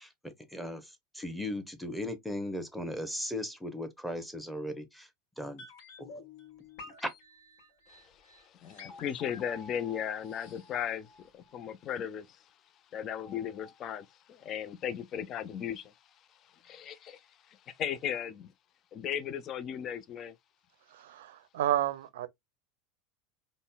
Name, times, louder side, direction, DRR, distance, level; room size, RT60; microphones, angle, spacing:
voice 1, 0.0-5.1 5.4-5.6 6.0-6.1 6.9-7.1, left 1 dB, ahead, 0.9 m, -37 dB
sound 1, 5.6-11.6 11.9-12.0, left 3 dB, 65° left, 1.4 m, -50 dB
voice 2, 7.9-12.4 12.9-15.8 16.6-18.5 18.9-20.3, left 9 dB, 40° left, 0.4 m, -37 dB
voice 3, 20.9-22.3, right 12 dB, 70° right, 0.5 m, -31 dB
5.2 x 2.1 x 2.2 m
hypercardioid pair, 80°, 0 cm